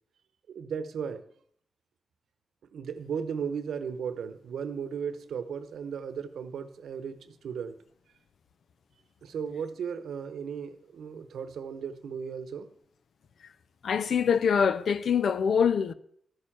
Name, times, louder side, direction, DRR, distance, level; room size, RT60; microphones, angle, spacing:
voice 1, 0.5-1.2 2.7-7.8 9.2-12.7, right 7 dB, 80° right, 0.9 m, -36 dB
voice 2, 13.8-15.9, left 7 dB, 70° left, 0.6 m, -24 dB
13.0 x 6.6 x 7.3 m
cardioid pair, 65°, 0 cm